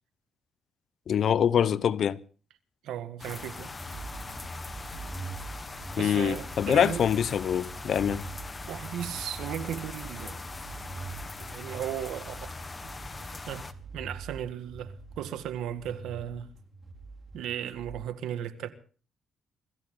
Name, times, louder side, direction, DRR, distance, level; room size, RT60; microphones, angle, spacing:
voice 1, 1.1-2.2 6.0-8.3, left 8 dB, 60° left, 0.8 m, -25 dB
voice 2, 2.8-3.7 6.0-7.0 8.1-8.2 8.7-10.4 11.4-12.5 13.4-16.5 17.3-18.7, right 10 dB, 85° right, 1.8 m, -36 dB
sound 1, 3.2-13.7, left 3 dB, 25° left, 1.6 m, -41 dB
sound 2, 3.8-18.0, right 2 dB, 30° right, 5.1 m, -43 dB
25.5 x 15.0 x 3.8 m
cardioid pair, 90°, 0 cm